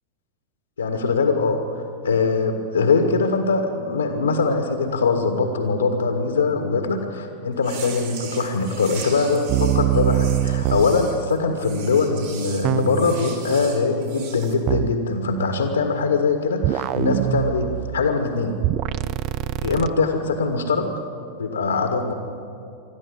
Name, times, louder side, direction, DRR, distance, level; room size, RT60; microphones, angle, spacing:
voice 1, 0.8-18.6 19.6-20.9 21.4-22.1, left 4 dB, 75° left, 5 dB, 1.7 m, -22 dB
sound 1, 7.6-14.5, right 6 dB, 60° right, 3.3 m, -39 dB
sound 2, 9.5-11.0 12.6-13.2 14.7-15.0 16.6-18.1 18.6-19.9, right 14 dB, 40° right, 0.5 m, -23 dB
21.5 x 13.5 x 9.9 m, 2.7 s
figure-of-eight pair, 90°, 0 cm